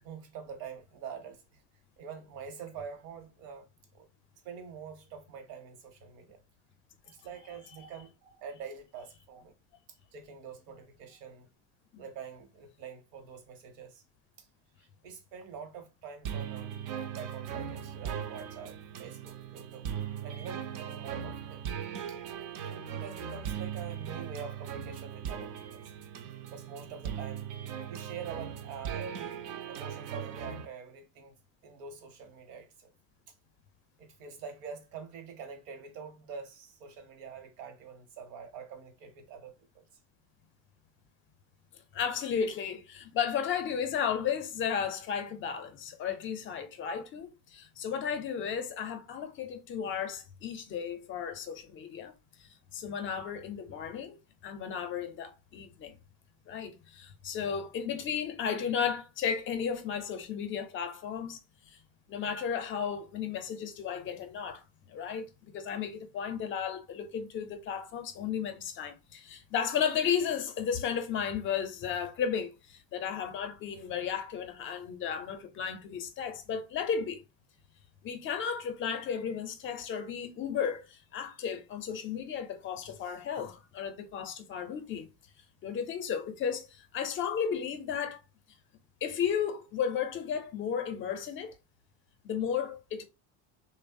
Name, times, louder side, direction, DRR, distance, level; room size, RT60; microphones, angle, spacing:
voice 1, 0.0-1.6 2.0-3.7 3.9-4.1 4.4-6.4 7.0-9.5 10.1-11.5 12.0-14.0 14.4-14.5 14.8-16.8 17.1-19.8 20.2-21.6 22.1-22.2 22.7-25.9 26.5-27.5 27.9-29.4 29.7-31.4 31.6-32.9 34.0-39.8, right 6 dB, 80° right, 0.9 m, -45 dB
sound 1, 16.2-30.6, right 8 dB, 55° right, 0.4 m, -39 dB
voice 2, 41.9-52.1 52.4-54.2 54.4-56.0 56.5-61.4 61.7-61.8 62.1-65.3 65.5-77.2 78.0-85.1 85.6-88.2 89.0-91.5 92.2-93.0, left 7 dB, 35° left, 0.5 m, -34 dB
3.0 x 2.0 x 2.5 m
cardioid pair, 130°, 38 cm